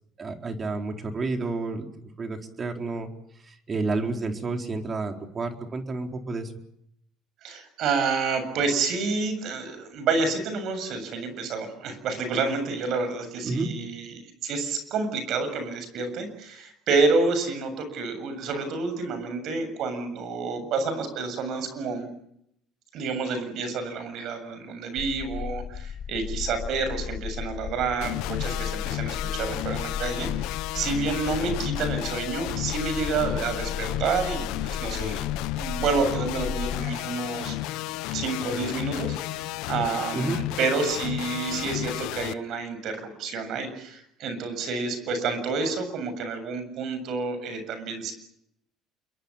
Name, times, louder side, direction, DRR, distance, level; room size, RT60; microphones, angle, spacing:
voice 1, 0.2-3.1 3.4-6.5 13.4-13.8 40.1-40.4, right 3 dB, 35° right, 4 dB, 4.3 m, -30 dB
voice 2, 7.4-22.1 22.9-35.3 35.5-37.6 38.1-48.1, right 4 dB, 60° right, 9 dB, 7.4 m, -29 dB
sound 1, 25.0-36.9, left 7 dB, 45° left, 1.1 m, -35 dB
sound 2, 28.0-42.3, left 17 dB, 75° left, 0.9 m, -32 dB
28.0 x 22.5 x 7.3 m, 0.75 s
hypercardioid pair, 70°, 0 cm